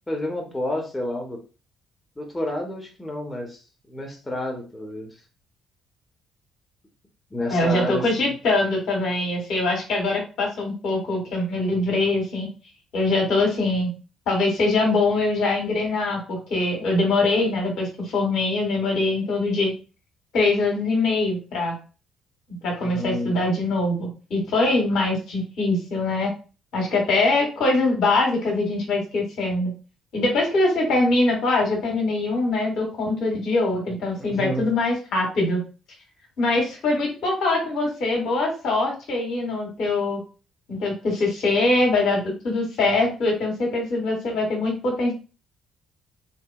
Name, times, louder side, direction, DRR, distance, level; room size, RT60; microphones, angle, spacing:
voice 1, 0.1-1.4 2.2-3.6 3.9-5.1 7.3-8.3 22.8-23.3 34.2-34.7, left 1 dB, 15° left, 1 dB, 0.8 m, -30 dB
voice 2, 7.5-12.5 12.9-13.9 14.3-19.7 20.3-21.8 22.6-26.3 26.7-29.7 30.1-35.6 36.4-40.2 40.7-45.1, left 2 dB, 60° left, 0 dB, 0.9 m, -23 dB
2.7 x 2.1 x 2.3 m, 0.34 s
figure-of-eight pair, 45°, 0 cm